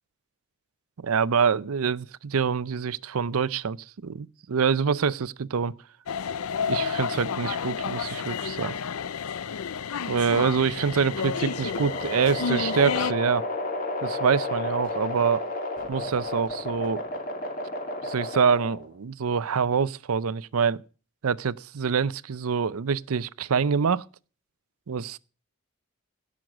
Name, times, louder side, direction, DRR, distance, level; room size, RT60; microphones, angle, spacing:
voice 1, 1.0-5.8 6.7-8.8 10.1-13.4 14.0-15.4 15.9-17.0 18.0-20.8 21.2-24.0 24.9-25.2, right 6 dB, 80° right, 0.5 m, -25 dB
sound 1, 6.1-13.1, left 6 dB, 85° left, 0.5 m, -30 dB
sound 2, 10.9-18.9, left 2 dB, 40° left, 2.7 m, -32 dB
17.0 x 6.4 x 6.1 m
head